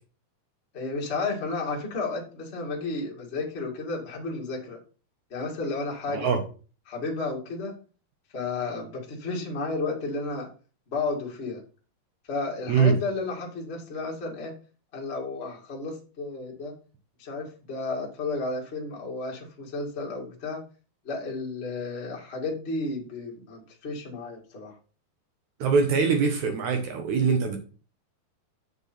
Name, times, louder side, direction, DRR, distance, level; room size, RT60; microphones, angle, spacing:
voice 1, 0.7-4.8 5.3-6.3 6.8-7.7 8.3-10.5 10.9-11.6 12.3-14.5 14.9-16.7 17.2-20.6 21.0-24.7, left 3 dB, 25° left, 1.6 m, -32 dB
voice 2, 6.1-6.4 12.7-13.0 25.6-27.6, right 5 dB, 70° right, 1.9 m, -23 dB
7.7 x 7.4 x 4.4 m
omnidirectional pair, 4.8 m